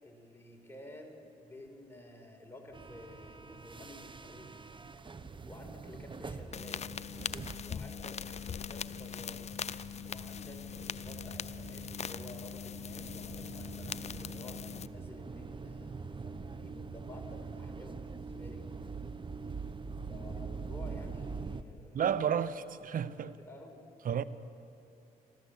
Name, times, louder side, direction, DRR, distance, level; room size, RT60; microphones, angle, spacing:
voice 1, 0.0-4.6 5.5-6.8 7.6-8.1 8.5-9.5 10.1-18.6 20.1-22.0 23.4-23.9, left 1 dB, 15° left, 4.9 m, -51 dB
sound 1, 2.7-21.6, right 4 dB, 30° right, 1.0 m, -44 dB
sound 2, 6.5-14.9, left 8 dB, 40° left, 0.6 m, -41 dB
voice 2, 21.9-23.4 24.0-24.2, right 8 dB, 60° right, 0.9 m, -31 dB
26.5 x 13.5 x 8.3 m
supercardioid pair, 65°, 16 cm